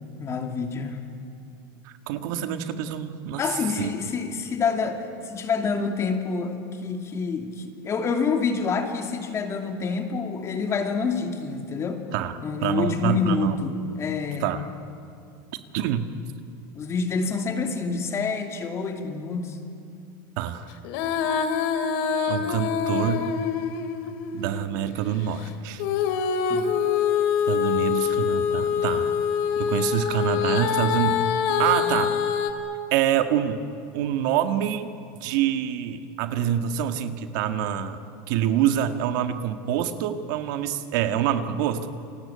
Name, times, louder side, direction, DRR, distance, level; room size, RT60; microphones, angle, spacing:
voice 1, 0.2-1.0 3.4-12.0 12.4-14.5 16.7-19.6 26.5-26.7, left 5 dB, 25° left, 5 dB, 2.6 m, -27 dB
voice 2, 1.8-3.9 12.1-13.6 14.4-14.6 15.7-16.1 20.4-20.7 22.3-23.3 24.3-25.8 27.5-29.1 29.6-32.1 32.9-33.6 33.9-34.9 35.2-38.0 38.3-41.9, right 10 dB, 65° right, 8 dB, 1.8 m, -26 dB
Female singing, 20.8-24.6 25.8-32.5, left 7 dB, 60° left, 2.6 m, -25 dB
29.5 x 22.5 x 8.8 m, 2.5 s
supercardioid pair, 150°, 11 cm